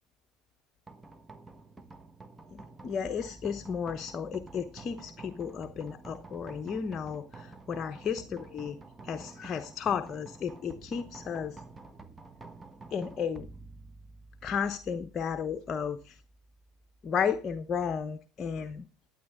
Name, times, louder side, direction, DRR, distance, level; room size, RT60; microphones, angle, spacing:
sound 1, 0.9-18.1, right 3 dB, 20° right, 1.4 m, -50 dB
voice 1, 2.5-8.8 9.0-11.6 12.9-13.5 14.4-16.2 17.0-18.8, left 7 dB, 40° left, 0.9 m, -33 dB
11.5 x 9.8 x 3.6 m
hypercardioid pair, 85°, 0 cm